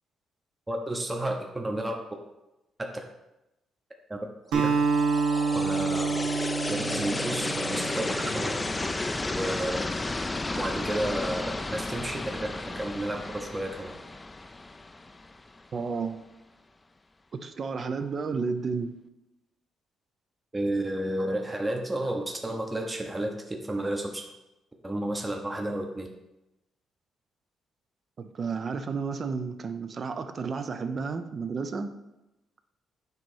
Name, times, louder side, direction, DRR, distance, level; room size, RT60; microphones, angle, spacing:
voice 1, 0.7-1.9 2.8-2.9 4.1-4.2 4.5-4.9 5.5-6.3 6.7-8.5 9.3-9.7 10.5-11.4 11.7-12.2 12.7-14.0 20.5-24.3 24.8-26.1, right 1 dB, 15° right, 2 dB, 0.8 m, -31 dB
Acoustic guitar, 4.5-9.0, right 4 dB, 85° right, 1.1 m, -28 dB
sound 1, 4.6-15.7, left 2 dB, 20° left, 0.4 m, -33 dB
voice 2, 15.7-16.2 17.4-18.9 28.2-31.9, right 5 dB, 45° right, 9 dB, 0.6 m, -32 dB
7.9 x 3.0 x 5.5 m, 0.95 s
cardioid pair, 90°, 0 cm